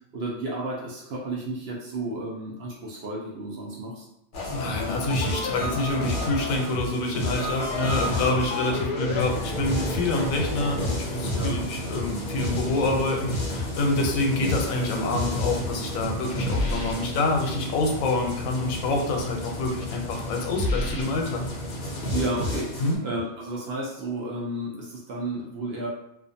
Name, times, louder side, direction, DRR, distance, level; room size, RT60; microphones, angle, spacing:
voice 1, 0.1-4.1 11.3-11.6 22.0-25.9, right 2 dB, 60° right, -4 dB, 0.7 m, -32 dB
sound 1, 4.3-23.0, left 1 dB, 55° left, 0.6 m, -30 dB
voice 2, 4.5-21.5 22.8-23.0, left 2 dB, 90° left, 2 dB, 1.0 m, -27 dB
2.4 x 2.3 x 2.6 m, 0.80 s
omnidirectional pair, 1.4 m